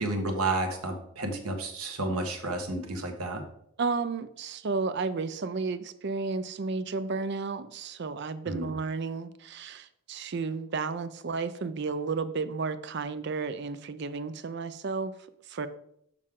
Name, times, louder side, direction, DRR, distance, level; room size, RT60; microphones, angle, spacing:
voice 1, 0.0-3.4 8.5-8.7, right 2 dB, 85° right, 3 dB, 1.3 m, -31 dB
voice 2, 3.8-15.1 15.5-15.7, right 4 dB, 50° right, 12 dB, 0.4 m, -32 dB
6.6 x 6.2 x 3.7 m, 0.73 s
head